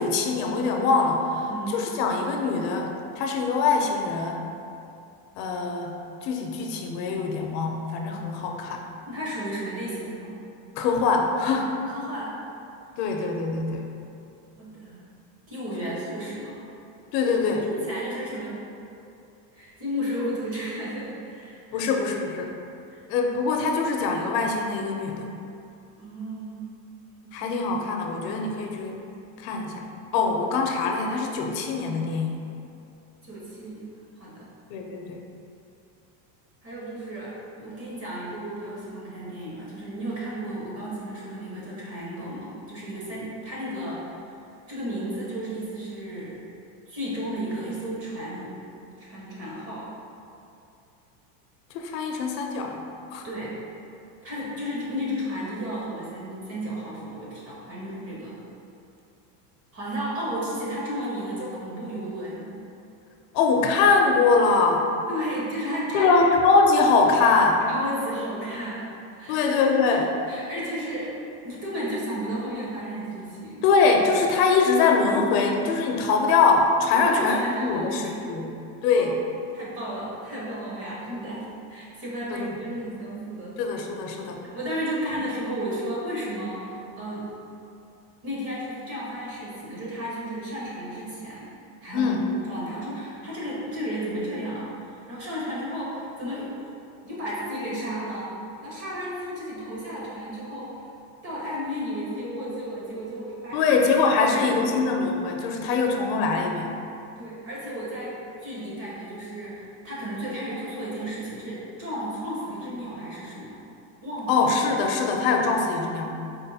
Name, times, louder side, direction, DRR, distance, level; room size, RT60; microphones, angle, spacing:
voice 1, 0.0-4.4 5.4-5.9 6.2-8.8 10.8-11.8 13.0-13.9 17.1-17.6 21.7-22.5 23.1-25.3 27.3-29.0 29.4-29.9 30.1-32.4 34.7-35.2 51.7-52.8 53.1-53.2 63.3-64.8 65.9-67.6 69.3-70.1 73.6-78.5 78.8-79.2 82.3-82.8 83.6-84.4 91.9-92.2 103.5-106.7 114.3-116.1, left 4 dB, 75° left, 2 dB, 0.6 m, -23 dB
voice 2, 1.5-1.8 9.1-10.4 11.8-12.4 14.6-15.0 15.5-16.6 17.2-18.6 19.5-21.9 22.9-23.0 26.0-26.6 27.2-27.5 33.2-33.8 34.2-34.5 36.6-44.0 44.7-46.4 46.9-48.6 49.0-49.9 53.2-53.6 54.2-58.3 59.7-62.5 65.1-66.3 67.7-68.9 69.2-69.7 70.3-71.1 71.4-73.6 76.9-78.4 78.9-79.1 79.5-83.6 84.5-87.3 88.2-91.5 91.8-96.5 97.0-98.3 98.6-100.7 101.2-103.8 104.1-105.0 107.2-113.6 114.0-114.4, equal, 30° right, -6 dB, 0.8 m, -33 dB
4.3 x 2.5 x 2.7 m, 2.7 s
cardioid pair, 155°, 49 cm